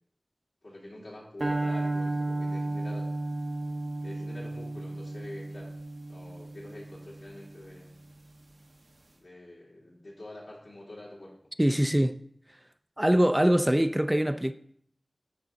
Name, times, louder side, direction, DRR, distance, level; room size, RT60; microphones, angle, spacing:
voice 1, 0.6-3.1 4.0-5.8 6.1-8.0 9.2-11.3, left 1 dB, 85° left, 3.0 m, -46 dB
sound 1, 1.4-7.7, right 2 dB, 60° right, 0.7 m, -33 dB
voice 2, 11.6-12.2 13.0-14.5, equal, 15° right, 0.3 m, -23 dB
11.5 x 3.9 x 3.6 m
wide cardioid pair, 50°, 0 cm